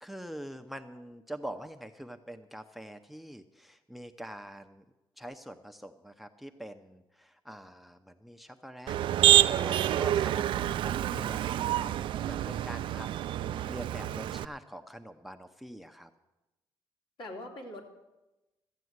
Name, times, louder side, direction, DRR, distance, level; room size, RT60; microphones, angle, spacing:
voice 1, 0.0-4.8 5.2-9.0 9.5-11.7 12.2-16.1, right 1 dB, ahead, 9 dB, 0.6 m, -45 dB
Motor vehicle (road), 8.9-14.4, right 12 dB, 70° right, 0.4 m, -27 dB
voice 2, 9.7-10.3 11.7-12.3 17.2-17.9, left 1 dB, 65° left, 0 dB, 2.9 m, -46 dB
14.0 x 8.3 x 8.0 m, 1.0 s
cardioid pair, 105°, 9 cm